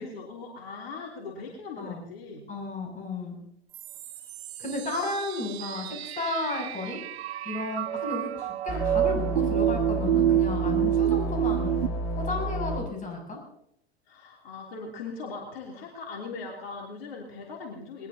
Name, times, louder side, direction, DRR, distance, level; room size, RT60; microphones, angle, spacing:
voice 1, 0.0-2.4 14.1-18.1, left 4 dB, 65° left, -1 dB, 3.3 m, -40 dB
voice 2, 2.5-3.4 4.6-7.0 7.4-13.4, left 2 dB, 25° left, 1 dB, 7.8 m, -33 dB
sound 1, 3.7-11.9, right 13 dB, 80° right, 0.5 m, -28 dB
sound 2, 8.7-12.8, right 1 dB, 45° left, 4.2 m, -31 dB
21.0 x 21.0 x 2.9 m, 0.71 s
hypercardioid pair, 90°, 32 cm